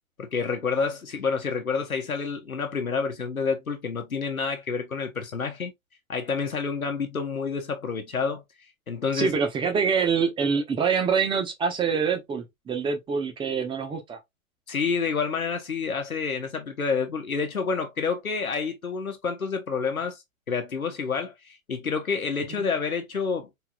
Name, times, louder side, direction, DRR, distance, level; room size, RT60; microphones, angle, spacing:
voice 1, 0.2-5.7 6.1-8.4 8.9-9.3 14.7-23.5, left 5 dB, 85° left, 1.0 m, -28 dB
voice 2, 9.1-14.2 22.5-22.7, right 6 dB, 10° right, 0.9 m, -25 dB
4.6 x 3.5 x 2.3 m
figure-of-eight pair, 110°, 42 cm